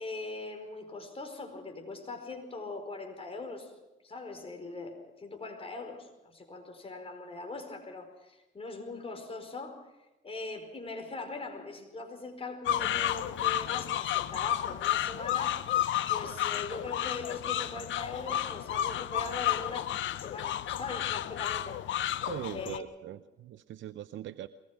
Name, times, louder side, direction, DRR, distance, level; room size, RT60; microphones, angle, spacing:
voice 1, 0.0-3.7 4.0-9.9 10.2-15.6 16.1-19.9 20.1-21.8 22.5-22.8, left 3 dB, 30° left, 5 dB, 4.8 m, -41 dB
sound 1, 12.6-22.8, left 12 dB, 75° left, 0.8 m, -32 dB
voice 2, 22.2-24.5, right 12 dB, 70° right, 12 dB, 0.7 m, -41 dB
22.5 x 19.5 x 5.9 m, 1.0 s
cardioid pair, 90°, 20 cm